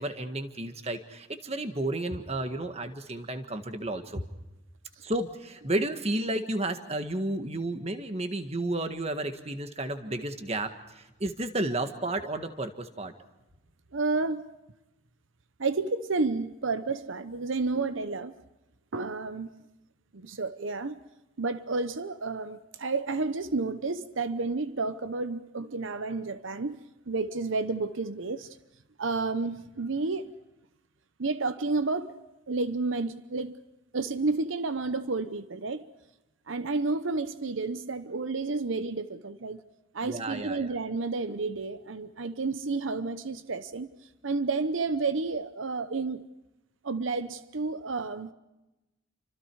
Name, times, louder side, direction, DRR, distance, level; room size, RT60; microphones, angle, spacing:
voice 1, 0.0-4.2 5.0-13.1 40.0-40.7, right 1 dB, 30° right, 1.7 m, -32 dB
voice 2, 13.9-14.5 15.6-18.3 18.9-19.5 20.1-21.0 21.4-28.6 29.0-30.3 31.2-32.2 32.5-33.6 33.9-35.9 36.5-39.6 39.9-43.9 44.2-46.3 46.8-48.3, right 3 dB, 80° right, 0.9 m, -31 dB
29.5 x 25.5 x 4.8 m
head